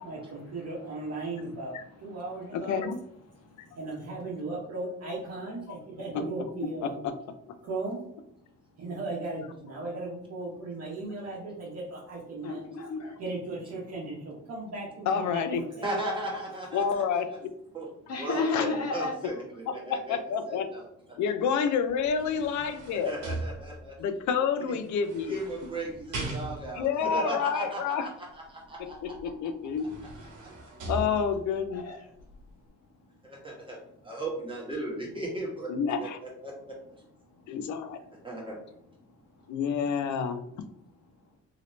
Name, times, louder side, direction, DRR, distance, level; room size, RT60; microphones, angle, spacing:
voice 1, 0.0-1.7 2.0-2.9 3.8-7.0 7.6-8.1 8.8-12.6 13.2-15.9, right 2 dB, 55° right, -4 dB, 1.0 m, -37 dB
voice 2, 2.5-3.0 5.7-5.8 6.1-6.2 6.6-7.1 15.1-15.6 16.7-17.5 18.5-18.6 19.7-20.7 21.2-23.1 24.0-25.4 26.7-28.1 28.8-29.9 30.9-31.8 35.7-36.2 37.5-38.0 39.5-40.4, left 6 dB, 75° left, 9 dB, 0.5 m, -29 dB
voice 3, 3.3-3.8 12.4-13.2 18.1-19.1 31.7-32.0 37.4-37.5, left 3 dB, 55° left, 2 dB, 1.0 m, -32 dB
voice 4, 15.8-17.2 17.7-17.9 18.2-20.2 20.5-20.8 23.0-23.9 24.6-24.7 25.3-29.1 33.2-33.8 34.0-35.7 36.0-36.5 38.2-38.6, right 1 dB, 15° right, -3 dB, 1.4 m, -36 dB
sound 1, 21.9-24.1 24.9-26.9 29.2-29.3 29.7-31.7 32.2-32.3, right 2 dB, 75° right, 1.0 m, -39 dB
2.9 x 2.9 x 3.1 m, 0.75 s
cardioid pair, 90°, 30 cm